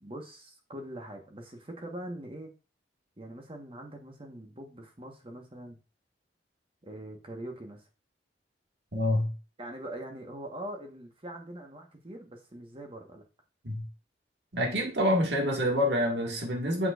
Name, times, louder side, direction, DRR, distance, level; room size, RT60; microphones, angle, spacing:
voice 1, 0.0-2.5 3.2-5.8 6.8-7.9 9.6-13.2, right 1 dB, 30° right, 1.3 m, -43 dB
voice 2, 8.9-9.3 13.6-13.9 14.5-16.9, left 1 dB, 65° right, 1.8 m, -27 dB
7.7 x 6.2 x 2.5 m
head